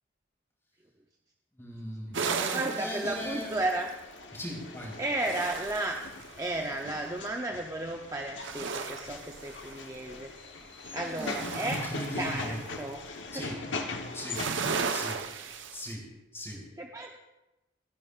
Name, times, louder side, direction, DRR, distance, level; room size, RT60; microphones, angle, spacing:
voice 1, 1.5-3.5 4.3-5.0 11.0-12.6 13.3-13.6 14.1-14.5 14.9-15.2 15.7-16.1 16.3-16.7, equal, 15° left, -3 dB, 3.9 m, -38 dB
sound 1, 2.1-4.1 4.9-6.6 8.3-10.1 10.6-13.0 14.1-15.9, right 5 dB, 80° right, 1.0 m, -36 dB
voice 2, 2.2-3.9 5.0-5.9 6.4-10.3 10.9-11.8 12.2-13.1 13.3-13.6 16.8-17.2, right 2 dB, 20° right, 2 dB, 0.6 m, -33 dB
sound 2, 3.0-14.5, left 3 dB, 75° left, 1.1 m, -41 dB
27.0 x 10.5 x 2.5 m, 1.0 s
head